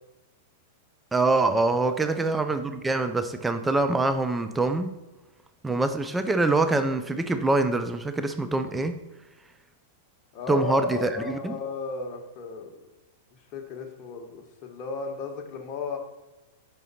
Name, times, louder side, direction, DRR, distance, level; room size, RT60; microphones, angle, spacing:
voice 1, 1.1-5.0 5.6-9.0 10.5-11.6, right 2 dB, 10° right, 9 dB, 0.5 m, -24 dB
voice 2, 10.3-12.8 13.5-16.0, left 5 dB, 40° left, 2 dB, 1.2 m, -34 dB
5.4 x 4.9 x 4.1 m, 1.1 s
hypercardioid pair, 105°, 0 cm